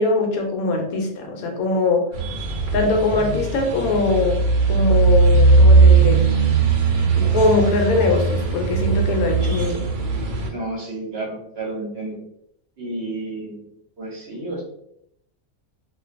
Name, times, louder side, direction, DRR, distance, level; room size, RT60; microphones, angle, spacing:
voice 1, 0.0-2.1 2.7-4.4 4.7-6.3 7.1-9.9, left 3 dB, 80° left, 2 dB, 1.0 m, -21 dB
sound 1, 2.1-10.5, right 4 dB, 80° right, 1.1 m, -18 dB
voice 2, 10.5-12.2 12.8-13.7 14.0-14.6, right 2 dB, 55° right, -4 dB, 0.9 m, -31 dB
2.4 x 2.3 x 2.4 m, 0.73 s
omnidirectional pair, 1.5 m